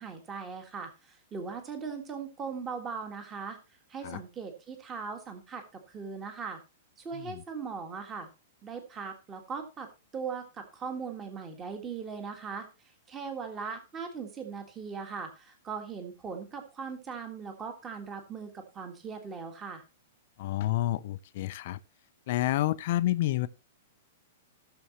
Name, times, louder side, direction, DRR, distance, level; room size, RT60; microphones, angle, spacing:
voice 1, 0.0-3.6 3.9-6.6 7.0-8.3 8.6-9.9 10.1-12.7 13.1-19.8, right 5 dB, 15° right, 1.7 m, -39 dB
voice 2, 7.1-7.4 20.4-21.8 22.3-23.5, left 15 dB, 40° left, 0.6 m, -29 dB
16.0 x 6.9 x 3.0 m
supercardioid pair, 175°, 0 cm